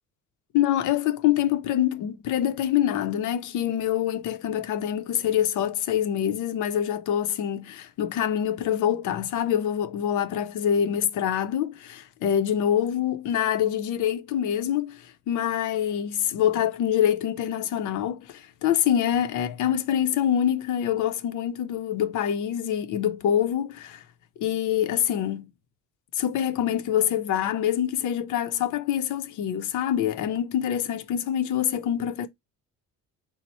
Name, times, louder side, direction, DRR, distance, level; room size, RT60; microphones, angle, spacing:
voice 1, 0.5-24.0 24.4-25.5 26.1-32.3, left 10 dB, 75° left, 0.6 m, -25 dB
4.1 x 2.1 x 4.2 m
cardioid pair, 175°, 31 cm